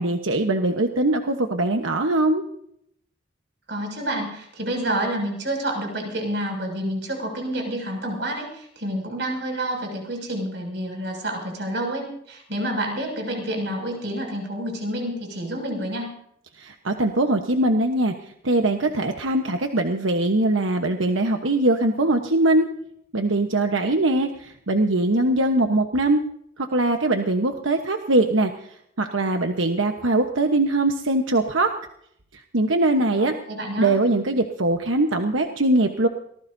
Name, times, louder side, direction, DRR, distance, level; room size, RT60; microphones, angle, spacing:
voice 1, 0.0-2.4 16.6-22.7 23.1-26.2 26.6-28.5 29.0-31.7 32.3-33.3 33.8-36.1, right 2 dB, 90° right, 4 dB, 1.2 m, -21 dB
voice 2, 3.7-16.1 33.2-33.9, right 1 dB, 60° right, 2 dB, 6.6 m, -29 dB
24.5 x 19.5 x 2.8 m, 0.72 s
head